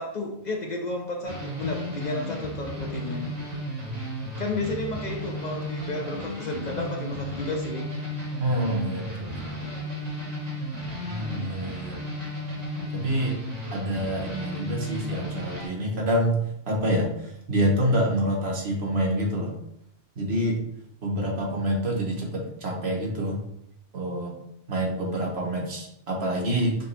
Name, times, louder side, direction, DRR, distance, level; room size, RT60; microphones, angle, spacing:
voice 1, 0.0-3.2 4.4-7.9, left 2 dB, 50° left, 1 dB, 0.6 m, -32 dB
sound 1, 1.2-15.7, equal, 35° right, 1.5 m, -34 dB
voice 2, 8.4-9.6 11.0-12.0 12.9-13.4 13.7-19.6 20.2-20.6 21.0-23.4 23.9-24.3 24.7-26.7, equal, 70° right, 0 dB, 1.3 m, -27 dB
5.1 x 2.9 x 3.2 m, 0.79 s
omnidirectional pair, 1.1 m